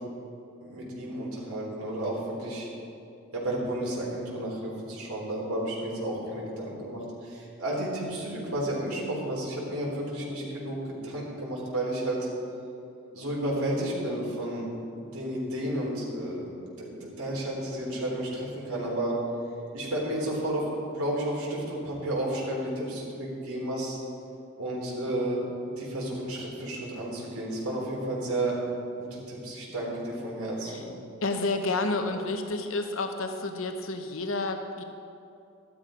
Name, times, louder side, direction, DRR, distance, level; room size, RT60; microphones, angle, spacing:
voice 1, 0.6-2.7 3.3-12.3 13.1-14.7 15.1-16.5 16.8-19.2 19.7-20.7 20.9-24.0 24.6-25.4 25.8-28.6 29.0-30.8, right 1 dB, 80° right, -4 dB, 3.7 m, -32 dB
voice 2, 31.2-34.8, left 3 dB, 65° left, 5 dB, 0.9 m, -30 dB
13.5 x 12.0 x 5.1 m, 2.6 s
head